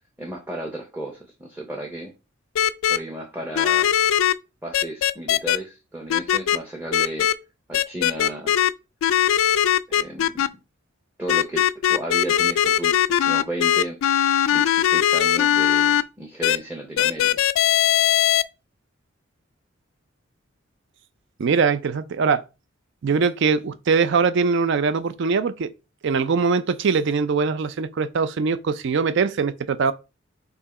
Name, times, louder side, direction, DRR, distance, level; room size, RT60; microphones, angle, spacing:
voice 1, 0.2-2.1 2.9-3.9 4.6-7.3 7.7-8.5 9.9-10.4 11.2-11.6 11.9-12.9 13.3-14.0 14.5-17.4, right 1 dB, 10° right, 0.7 m, -33 dB
sound 1, 2.6-3.0 3.6-4.3 4.7-5.6 6.1-6.6 6.9-7.3 7.7-8.7 9.0-10.5 11.3-16.0 16.4-16.6 17.0-18.4, left 11 dB, 85° left, 0.3 m, -19 dB
voice 2, 21.4-22.4 23.0-25.7 26.0-29.9, right 5 dB, 60° right, 0.4 m, -22 dB
4.6 x 2.8 x 4.1 m
head